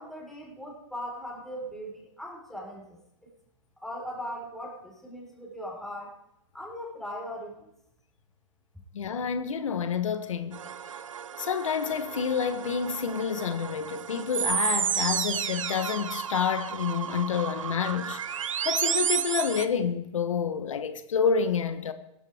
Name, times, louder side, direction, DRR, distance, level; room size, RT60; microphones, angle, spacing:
voice 1, 0.0-3.3 3.8-6.1 6.5-7.7, equal, ahead, 4.3 m, -39 dB
voice 2, 8.9-10.6 11.4-18.2 18.6-21.9, left 7 dB, 85° left, 1.1 m, -28 dB
sound 1, 10.5-19.7, right 8 dB, 90° right, 0.7 m, -32 dB
16.5 x 13.5 x 3.5 m
hypercardioid pair, 125°, 16 cm